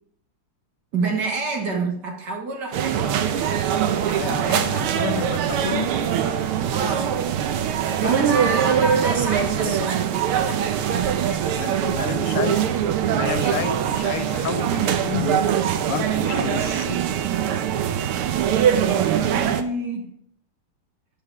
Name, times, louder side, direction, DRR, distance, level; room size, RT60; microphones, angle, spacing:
voice 1, 0.9-4.8 6.7-7.2 8.0-12.4 18.7-20.2, right 3 dB, 55° right, 2 dB, 2.2 m, -30 dB
sound 1, 2.7-19.6, right 9 dB, 85° right, 1.7 m, -22 dB
voice 2, 4.1-5.9 8.0-8.5 9.6-9.9 11.6-12.6 13.1-15.5 15.9-17.1, left 9 dB, 90° left, 12 dB, 1.6 m, -30 dB
12.5 x 5.5 x 4.8 m, 0.67 s
omnidirectional pair, 2.4 m